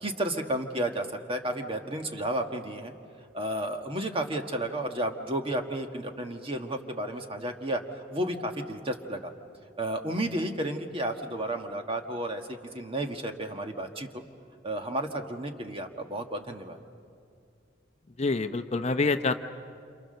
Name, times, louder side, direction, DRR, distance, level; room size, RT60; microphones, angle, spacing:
voice 1, 0.0-2.9 3.3-7.8 8.1-9.3 9.8-14.2 14.6-16.8, right 1 dB, 30° right, 4 dB, 1.5 m, -32 dB
voice 2, 18.2-19.4, left 3 dB, 35° left, 8 dB, 0.7 m, -26 dB
28.0 x 27.5 x 6.6 m, 2.3 s
head